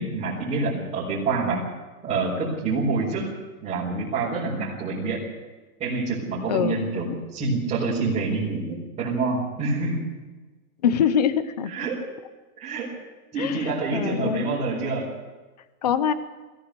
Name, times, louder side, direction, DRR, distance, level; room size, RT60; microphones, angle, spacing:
voice 1, 0.0-1.6 2.0-3.3 3.6-5.2 5.8-10.0 11.7-12.0 12.6-12.9 13.3-15.1, right 3 dB, 15° right, -10 dB, 4.8 m, -27 dB
voice 2, 6.5-7.2 10.8-11.7 13.4-14.5 15.8-16.1, left 8 dB, 25° left, 13 dB, 0.7 m, -24 dB
22.5 x 17.0 x 6.9 m, 1.3 s
hypercardioid pair, 180°, 48 cm